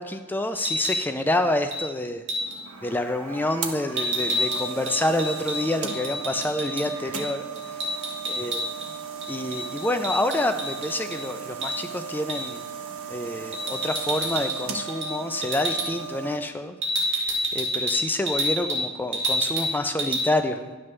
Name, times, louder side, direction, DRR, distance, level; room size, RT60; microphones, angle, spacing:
voice 1, 0.0-2.2 2.8-7.4 8.3-8.7 9.3-12.6 13.1-16.8 17.5-20.8, left 1 dB, 10° left, 7 dB, 0.3 m, -27 dB
sound 1, 0.5-1.0 1.7-1.9 2.3-2.6 4.0-6.9 7.1-7.3 7.5-8.9 9.2-11.2 11.6-11.7 12.3-12.5 13.5-14.6 14.9-15.1 15.4-15.9 16.8-18.8 19.1-19.7 20.0-20.2, equal, 55° right, 1.6 m, -28 dB
sound 2, 2.4-16.4, right 6 dB, 80° right, 1.0 m, -36 dB
10.5 x 7.7 x 3.2 m, 1.3 s
head